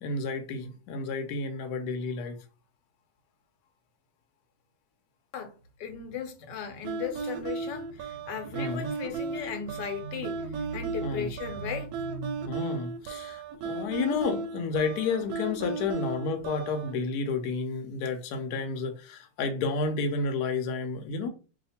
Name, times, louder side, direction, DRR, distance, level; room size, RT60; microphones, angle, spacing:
voice 1, 0.0-2.4 8.5-8.9 11.0-11.3 12.5-21.3, left 4 dB, 70° left, 1.1 m, -31 dB
voice 2, 5.8-12.6, left 5 dB, 90° left, 1.4 m, -36 dB
sound 1, 6.8-16.9, right 4 dB, 75° right, 1.0 m, -35 dB
2.8 x 2.4 x 4.1 m
omnidirectional pair, 1.8 m